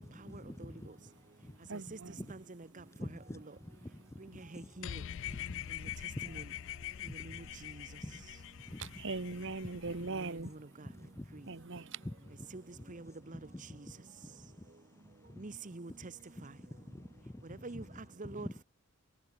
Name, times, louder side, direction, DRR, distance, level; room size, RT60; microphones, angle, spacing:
voice 1, 0.0-0.9 2.2-2.3 3.0-3.9 4.3-4.7 5.3-5.4 5.9-6.3 8.0-8.1 8.7-8.9 9.6-9.7 10.0-10.1 10.8-11.3 12.0-12.3 13.3-13.8 16.4-17.3 17.7-17.8 18.2-18.5, left 1 dB, 10° left, 0.6 m, -46 dB
voice 2, 1.7-2.2 8.8-10.5 11.5-12.0, right 3 dB, 55° right, 1.2 m, -40 dB
voice 3, 4.5-4.9 6.3-6.4 12.5-12.6 12.9-13.4 15.4-15.9 17.6-17.8 18.2-18.6, right 2 dB, 35° right, 0.9 m, -45 dB
sound 1, 4.8-10.4, left 11 dB, 60° left, 0.4 m, -44 dB
head